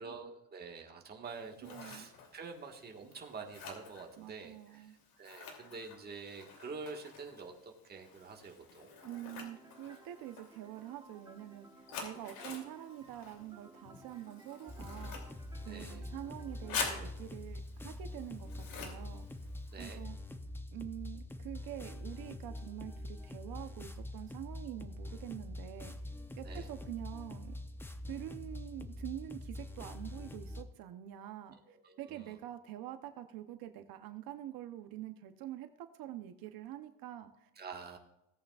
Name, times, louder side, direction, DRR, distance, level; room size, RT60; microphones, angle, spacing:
voice 1, 0.0-4.9 5.2-8.9 15.7-16.0 19.7-20.0 26.4-26.7 31.5-32.3 37.6-38.0, right 4 dB, 30° right, 1 dB, 1.6 m, -47 dB
Scissors, 1.2-20.0, left 5 dB, 80° left, 3.0 m, -48 dB
voice 2, 1.6-2.1 4.2-4.9 9.0-15.2 15.7-19.3 19.8-20.2 20.7-26.0 26.4-27.6 28.1-31.6 32.0-37.5, right 12 dB, 85° right, 8 dB, 0.9 m, -46 dB
sound 1, 9.0-17.0, right 2 dB, 10° right, 1.1 m, -59 dB
sound 2, 14.7-30.6, left 1 dB, 5° left, 0.5 m, -45 dB
17.0 x 8.5 x 2.4 m, 0.88 s
cardioid pair, 150°, 35 cm